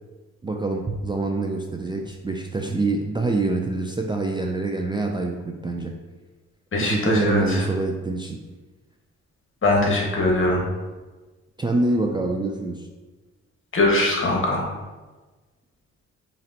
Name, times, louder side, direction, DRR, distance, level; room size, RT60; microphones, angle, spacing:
voice 1, 0.4-5.9 6.8-8.4 11.6-12.9, right 2 dB, 15° right, 2 dB, 0.3 m, -25 dB
voice 2, 6.7-7.6 9.6-10.6 13.7-14.6, left 2 dB, 45° left, -1 dB, 1.3 m, -21 dB
5.0 x 3.3 x 2.7 m, 1.2 s
cardioid pair, 75°, 29 cm